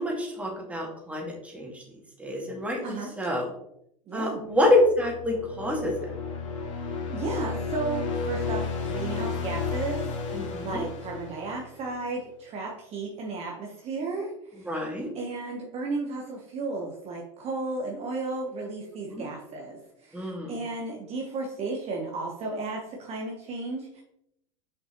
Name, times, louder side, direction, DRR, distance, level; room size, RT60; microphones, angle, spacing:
voice 1, 0.0-1.8 2.2-3.5 4.1-6.1 10.3-10.8 14.6-15.1 19.1-19.2 20.1-20.6, left 1 dB, 10° right, -1 dB, 2.2 m, -27 dB
voice 2, 4.1-4.4 7.1-14.7 15.1-24.0, right 3 dB, 40° right, 0 dB, 1.2 m, -34 dB
sound 1, 4.6-12.0, left 5 dB, 75° left, 1.5 m, -32 dB
6.2 x 5.3 x 3.0 m, 0.78 s
hypercardioid pair, 90°, 17 cm